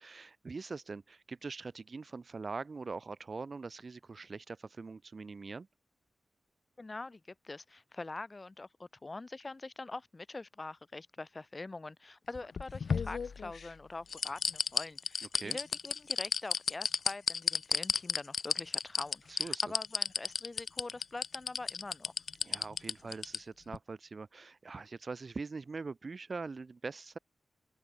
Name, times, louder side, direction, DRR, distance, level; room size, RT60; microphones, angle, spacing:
voice 1, 0.0-5.7 15.3-15.6 19.3-19.6 22.4-27.2, right 4 dB, 40° right, 1.0 m, -43 dB
voice 2, 6.8-22.1, left 3 dB, 25° left, 3.0 m, -44 dB
sound 1, 12.3-13.7 14.1-23.4 23.7-23.8, left 6 dB, 65° left, 1.2 m, -32 dB
open air
wide cardioid pair, 175°, 0 cm